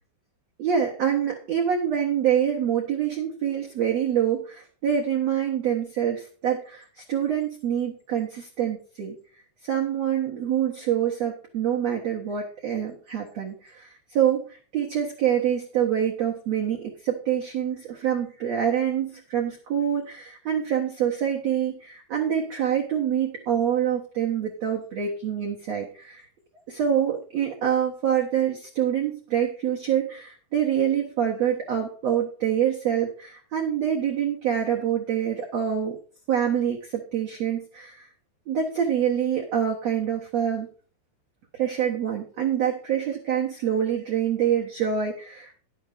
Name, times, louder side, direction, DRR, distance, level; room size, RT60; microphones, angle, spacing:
voice 1, 0.6-9.1 9.6-26.2 26.7-36.0 36.3-38.0 38.5-40.7 41.6-45.6, right 9 dB, 85° right, -2 dB, 1.4 m, -26 dB
11.0 x 7.2 x 5.1 m, 0.41 s
omnidirectional pair, 5.6 m